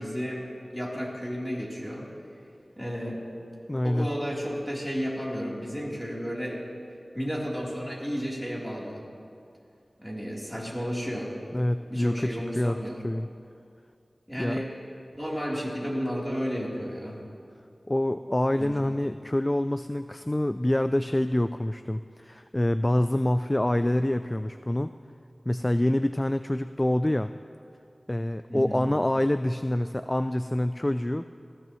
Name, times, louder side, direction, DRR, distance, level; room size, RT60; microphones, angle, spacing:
voice 1, 0.0-2.1 2.8-3.2 3.8-6.6 7.1-9.0 10.0-11.3 11.9-13.0 14.3-14.7 15.1-17.2 18.5-18.9 28.5-28.8, equal, ahead, -5 dB, 3.5 m, -32 dB
voice 2, 3.7-4.1 11.5-12.8 13.0-13.3 14.4-14.6 17.9-24.9 25.5-27.3 28.1-31.3, left 1 dB, 20° left, 10 dB, 0.3 m, -26 dB
19.5 x 15.5 x 3.1 m, 2.5 s
wide cardioid pair, 55°, 0 cm